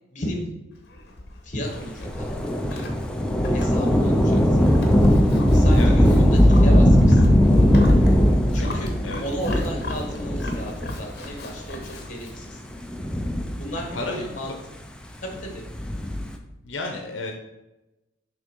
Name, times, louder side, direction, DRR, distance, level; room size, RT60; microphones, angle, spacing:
voice 1, 0.1-0.5 1.4-2.9 3.5-4.7 5.4-7.4 8.5-8.9 9.2-12.6 13.6-14.5 15.2-15.6, equal, 40° left, 2 dB, 1.5 m, -34 dB
Livestock farm animals working animals, 0.7-12.4, left 1 dB, 60° left, 1.0 m, -38 dB
Thunder / Rain, 2.0-11.0 11.8-11.9 12.8-14.1 15.6-16.3, equal, 5° left, 0.5 m, -18 dB
voice 2, 8.5-9.2 13.9-14.3 16.6-17.3, left 2 dB, 80° left, 3 dB, 0.7 m, -32 dB
6.2 x 3.6 x 5.3 m, 1.0 s
head